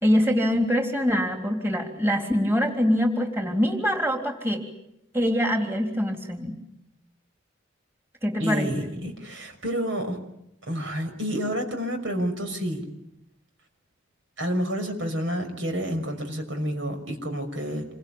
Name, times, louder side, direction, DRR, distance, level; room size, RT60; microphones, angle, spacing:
voice 1, 0.0-4.6 5.1-6.5 8.2-8.7, equal, 10° right, 2 dB, 3.5 m, -24 dB
voice 2, 8.4-10.2 10.7-12.8 14.4-17.9, equal, 75° right, 6 dB, 6.0 m, -29 dB
28.0 x 24.0 x 8.8 m, 0.82 s
head